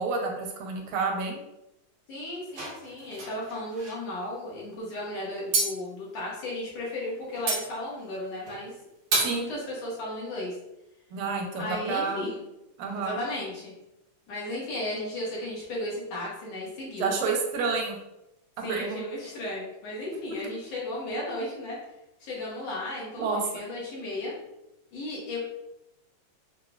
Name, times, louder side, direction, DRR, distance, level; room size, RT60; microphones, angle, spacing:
voice 1, 0.0-1.4 9.2-9.5 11.1-12.2 12.8-13.2 17.0-18.0 18.7-19.0 23.2-23.6, right 4 dB, 85° right, 1 dB, 2.1 m, -29 dB
voice 2, 2.1-8.7 9.2-10.6 11.6-12.4 13.0-13.7 14.3-17.1 18.6-21.8 22.2-24.3 24.9-25.4, left 1 dB, 65° left, -6 dB, 1.9 m, -35 dB
sound 1, 2.5-4.0 5.5-5.7 7.4-7.6 8.5-8.7 9.1-9.4, right 2 dB, 60° right, 1.2 m, -29 dB
5.8 x 2.1 x 2.3 m, 0.89 s
omnidirectional pair, 3.4 m